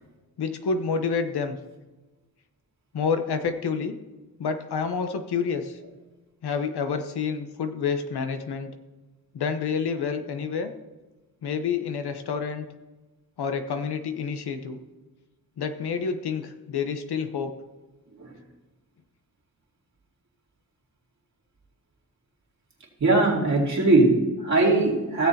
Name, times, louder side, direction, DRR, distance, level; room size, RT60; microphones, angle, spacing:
voice 1, 0.4-1.6 2.9-3.9 4.4-5.8 6.4-8.7 9.3-10.7 11.4-12.7 13.4-14.8 15.6-17.5, left 5 dB, 90° left, 8 dB, 0.9 m, -28 dB
voice 2, 23.0-25.3, right 2 dB, 45° right, -3 dB, 2.5 m, -20 dB
16.0 x 7.0 x 2.8 m, 1.2 s
wide cardioid pair, 115°, 38 cm